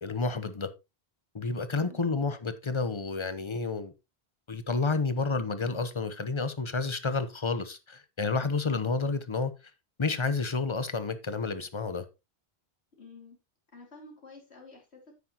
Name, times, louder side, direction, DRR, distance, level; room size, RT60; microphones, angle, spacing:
voice 1, 0.0-0.7 1.3-3.9 4.5-9.5 10.0-12.1, left 4 dB, 30° left, 0.9 m, -30 dB
voice 2, 1.8-2.2 13.0-13.4 13.7-15.1, left 3 dB, 85° left, 2.9 m, -50 dB
9.6 x 9.1 x 2.9 m
omnidirectional pair, 1.1 m